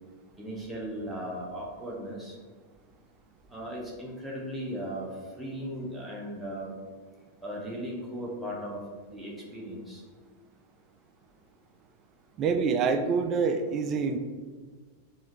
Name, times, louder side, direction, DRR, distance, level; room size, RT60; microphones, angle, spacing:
voice 1, 0.4-2.3 3.5-5.1 5.4-6.8 7.4-8.8 9.1-10.0, equal, ahead, -5 dB, 0.8 m, -37 dB
voice 2, 12.4-14.2, right 5 dB, 30° right, 7 dB, 0.3 m, -26 dB
3.5 x 2.6 x 4.4 m, 1.5 s
figure-of-eight pair, 90°, 0 cm